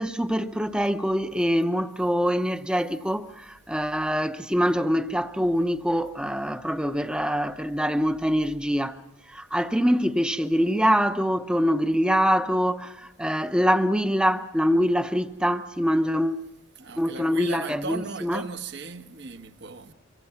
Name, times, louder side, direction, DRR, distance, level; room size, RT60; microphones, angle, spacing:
voice 1, 0.0-9.0 9.3-16.4 17.0-18.4, equal, 5° right, 0.7 m, -24 dB
voice 2, 16.8-19.9, right 3 dB, 55° right, 1.2 m, -37 dB
25.0 x 25.0 x 5.8 m
head